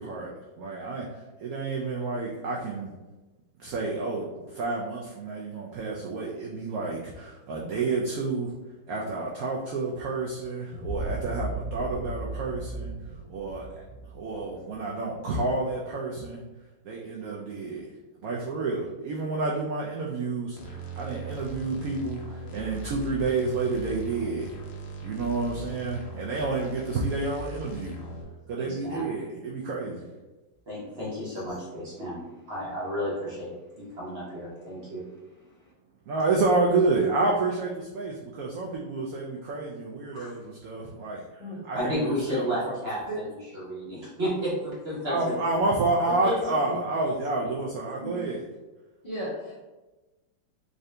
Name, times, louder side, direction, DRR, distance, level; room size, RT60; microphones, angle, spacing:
voice 1, 0.0-2.9 3.6-8.5 8.9-12.9 13.3-13.8 14.1-16.4 16.8-17.9 18.2-24.6 25.0-28.0 28.5-30.0 36.1-42.7 45.1-48.4, right 3 dB, 75° right, -3 dB, 0.8 m, -29 dB
sound 1, 10.7-15.4, right 2 dB, 50° left, 1.5 m, -36 dB
sound 2, 20.6-28.2, right 1 dB, 75° left, 1.4 m, -40 dB
voice 2, 28.5-29.0 30.7-35.0 40.1-40.3 41.7-45.3 46.0-46.3, equal, 40° right, -8 dB, 1.0 m, -32 dB
voice 3, 49.0-49.7, equal, 30° left, -9 dB, 1.1 m, -35 dB
3.7 x 2.6 x 3.3 m, 1.1 s
omnidirectional pair, 2.0 m